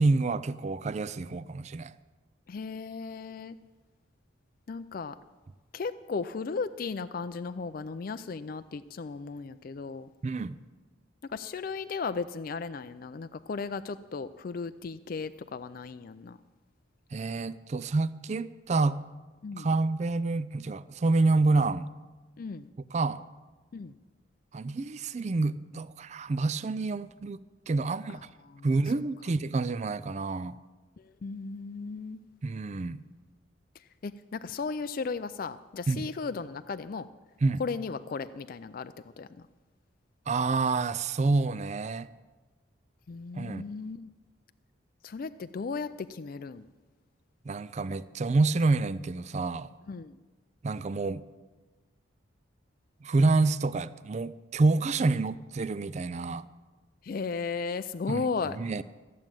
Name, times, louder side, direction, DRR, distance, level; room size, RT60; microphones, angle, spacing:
voice 1, 0.0-1.9 10.2-10.6 17.1-19.0 19.6-21.9 22.9-23.2 24.5-27.4 27.7-28.2 28.6-30.6 32.4-33.0 35.9-36.1 37.4-37.6 40.3-42.1 43.4-43.6 47.5-49.7 50.6-51.2 53.0-56.5 58.1-58.2 58.6-58.8, right 3 dB, 35° right, 16 dB, 0.4 m, -28 dB
voice 2, 2.5-3.6 4.7-5.2 5.7-10.1 11.2-16.4 19.4-19.7 22.4-22.7 23.7-24.0 28.1-28.7 31.0-32.2 33.8-37.1 37.6-39.5 43.1-44.0 45.0-46.6 49.9-50.2 57.0-58.6, left 4 dB, 45° left, 11 dB, 0.4 m, -36 dB
14.0 x 7.4 x 9.1 m, 1.3 s
head